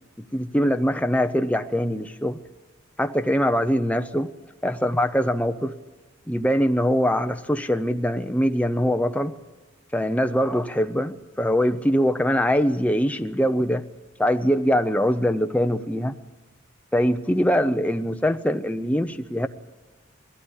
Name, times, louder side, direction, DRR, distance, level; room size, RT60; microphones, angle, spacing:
voice 1, 0.2-2.4 3.0-4.3 4.6-5.7 6.3-9.3 9.9-13.8 14.2-16.1 16.9-19.5, equal, 5° left, 0.7 m, -23 dB
20.5 x 16.0 x 10.0 m
head